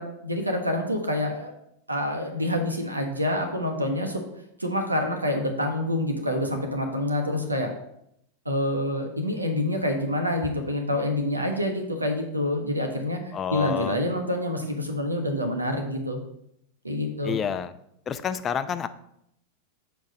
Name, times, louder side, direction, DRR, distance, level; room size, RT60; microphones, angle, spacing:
voice 1, 0.0-1.5 1.9-4.2 4.6-7.7 8.4-13.2 13.5-16.2 16.8-17.4, left 1 dB, 85° right, 4 dB, 1.1 m, -27 dB
voice 2, 13.3-14.0 17.2-17.7 18.1-18.9, left 8 dB, 25° left, 12 dB, 0.5 m, -29 dB
7.7 x 4.7 x 5.1 m, 0.76 s
figure-of-eight pair, 90°, 0 cm